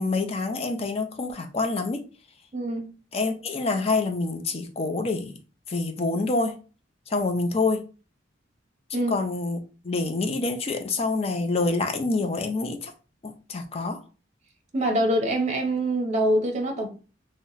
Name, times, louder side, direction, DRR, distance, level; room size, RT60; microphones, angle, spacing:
voice 1, 0.0-2.0 3.1-5.3 5.7-6.6 7.1-7.8 8.9-9.6 9.8-12.9 13.2-14.0, left 3 dB, 35° left, 0.5 m, -27 dB
voice 2, 2.5-2.9 8.9-9.1 14.7-16.9, right 1 dB, 40° right, 0.6 m, -24 dB
2.9 x 2.1 x 3.9 m
head